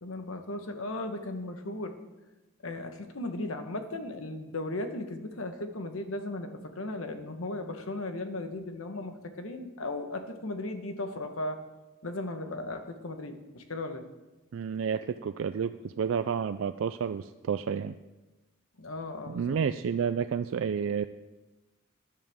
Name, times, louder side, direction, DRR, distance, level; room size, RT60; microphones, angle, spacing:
voice 1, 0.0-1.9 2.6-11.6 12.0-14.0 18.8-19.6, left 2 dB, 80° left, 7 dB, 1.2 m, -36 dB
voice 2, 14.5-18.0 19.3-21.1, right 7 dB, 70° right, 11 dB, 0.3 m, -30 dB
13.0 x 11.0 x 3.6 m, 1.1 s
head